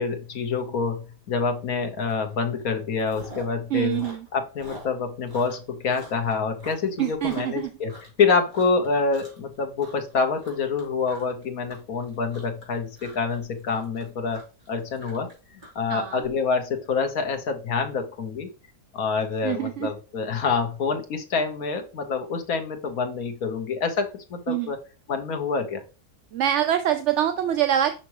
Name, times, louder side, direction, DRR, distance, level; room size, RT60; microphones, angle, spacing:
voice 1, 0.0-4.0 4.3-7.9 8.2-18.5 18.9-24.8 25.1-25.8, left 5 dB, 70° left, 6 dB, 1.6 m, -27 dB
Chewing mastication, 2.1-2.3 2.6-3.6 3.8-8.2 8.5-8.9 9.1-9.5 9.8-16.3, right 1 dB, 30° right, 3.1 m, -45 dB
voice 2, 3.7-4.2 7.0-7.7 15.9-16.2 19.4-19.9 24.5-24.7 26.3-27.9, right 11 dB, 65° right, 9 dB, 0.8 m, -24 dB
6.0 x 5.9 x 3.0 m, 0.34 s
omnidirectional pair, 1.6 m